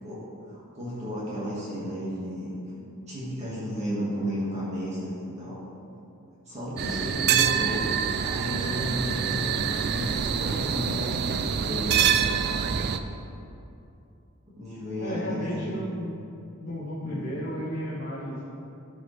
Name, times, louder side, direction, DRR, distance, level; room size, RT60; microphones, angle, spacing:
voice 1, 0.5-2.6 3.1-5.6 6.5-7.9 8.2-12.1 14.5-15.8 17.0-17.3, equal, 30° right, -9 dB, 1.7 m, -33 dB
sound 1, 6.8-13.0, right 7 dB, 50° right, 0.3 m, -26 dB
voice 2, 15.0-16.1 16.6-18.4, equal, 45° left, -11 dB, 1.9 m, -33 dB
13.0 x 4.8 x 3.3 m, 2.7 s
head